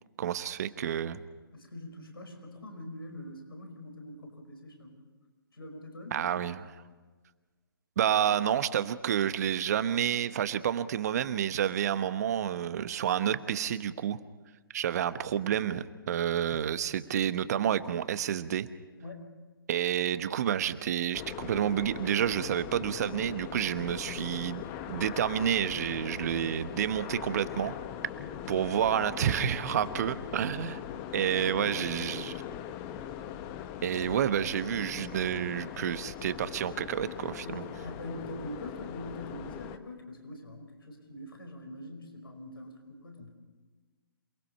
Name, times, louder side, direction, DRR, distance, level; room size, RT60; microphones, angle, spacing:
voice 1, 0.2-1.2 6.1-6.6 8.0-14.2 14.7-18.7 19.7-27.7 28.5-30.9 31.1-32.3 33.8-37.6, right 9 dB, 45° right, 13 dB, 1.1 m, -29 dB
voice 2, 1.5-5.0 5.5-6.3 19.0-19.3 28.1-28.4 30.9-32.3 34.1-34.2 37.4-43.3, left 1 dB, 75° left, 4 dB, 5.3 m, -44 dB
sound 1, 21.1-39.8, left 10 dB, 25° left, 1.1 m, -41 dB
28.0 x 19.5 x 5.6 m, 1.4 s
figure-of-eight pair, 135°, 12 cm